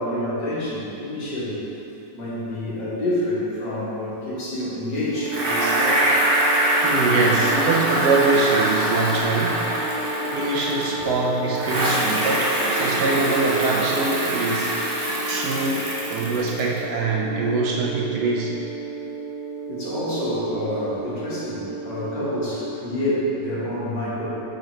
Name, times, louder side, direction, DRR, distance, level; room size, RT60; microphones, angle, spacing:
voice 1, 0.0-1.6 2.1-6.5 11.0-11.1 15.2-15.4 19.7-24.3, left 1 dB, 70° left, -8 dB, 2.1 m, -28 dB
sound 1, 5.0-22.7, right 2 dB, 25° left, 1.6 m, -32 dB
Bicycle, 5.3-11.1 11.5-16.8, right 1 dB, 40° right, 0.8 m, -24 dB
voice 2, 6.8-10.0 10.3-14.9 15.3-18.6, right 3 dB, 70° right, -2 dB, 1.1 m, -24 dB
5.1 x 5.1 x 4.4 m, 2.9 s
omnidirectional pair, 2.0 m